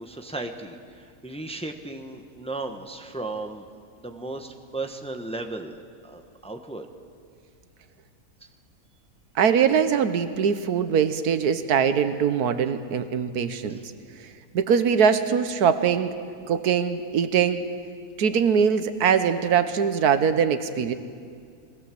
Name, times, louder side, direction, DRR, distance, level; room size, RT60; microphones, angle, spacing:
voice 1, 0.0-3.7 4.0-6.9, right 2 dB, 5° left, 5 dB, 1.0 m, -35 dB
voice 2, 9.3-13.8 14.5-16.1 16.5-17.6 18.2-20.9, right 7 dB, 85° right, 10 dB, 1.5 m, -22 dB
21.5 x 16.5 x 7.7 m, 2.2 s
omnidirectional pair, 1.6 m